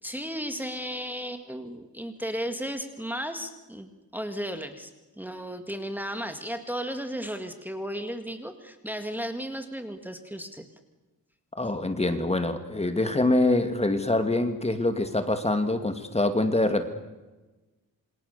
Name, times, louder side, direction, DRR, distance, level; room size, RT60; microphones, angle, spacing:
voice 1, 0.0-4.9 5.2-10.7, equal, 5° right, 6 dB, 2.1 m, -34 dB
voice 2, 11.6-16.9, left 2 dB, 15° left, 8 dB, 2.3 m, -25 dB
28.0 x 26.0 x 6.9 m, 1.1 s
wide cardioid pair, 140°, 37 cm